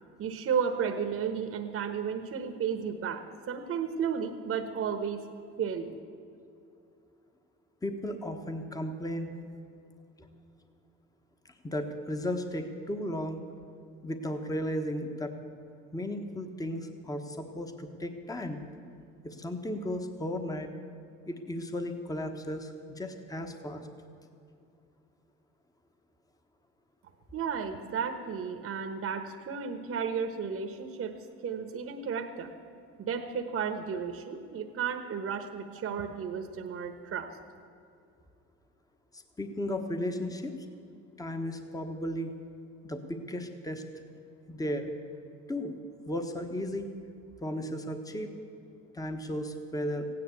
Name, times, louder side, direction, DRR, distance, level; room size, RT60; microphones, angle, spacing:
voice 1, 0.2-5.3 5.6-6.0 27.3-31.2 31.4-32.5 33.0-37.3, right 7 dB, 50° right, 6 dB, 1.2 m, -33 dB
voice 2, 7.8-9.3 10.2-10.3 11.6-13.4 14.0-15.3 15.9-18.6 19.2-20.7 21.3-23.8 39.1-40.5 41.2-42.3 42.8-43.8 44.5-44.9 45.5-45.7 46.0-46.9 47.4-48.3 48.9-50.1, left 1 dB, 10° left, 6 dB, 1.3 m, -35 dB
15.5 x 9.8 x 8.3 m, 2.5 s
supercardioid pair, 85°, 29 cm